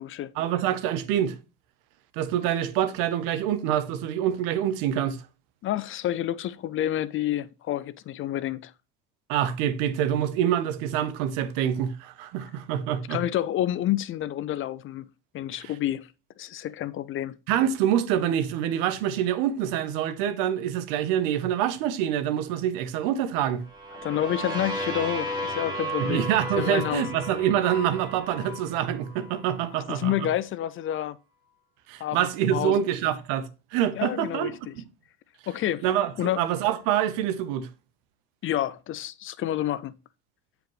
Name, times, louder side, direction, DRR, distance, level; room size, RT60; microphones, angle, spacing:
voice 1, 0.3-1.3 2.1-5.2 9.3-13.2 15.6-15.7 17.5-23.6 26.0-30.3 31.9-34.8 35.8-37.7, right 10 dB, 75° right, 0.9 m, -26 dB
voice 2, 5.6-8.7 13.1-15.0 15.3-16.1 16.4-17.3 24.0-26.3 26.6-27.0 29.9-31.2 32.0-32.8 33.9-34.7 35.5-35.8 36.2-36.4 38.4-39.9, left 12 dB, 40° left, 0.4 m, -29 dB
sound 1, 23.6-29.5, equal, 15° right, 3.3 m, -34 dB
9.2 x 5.0 x 3.1 m
supercardioid pair, 110°, 33 cm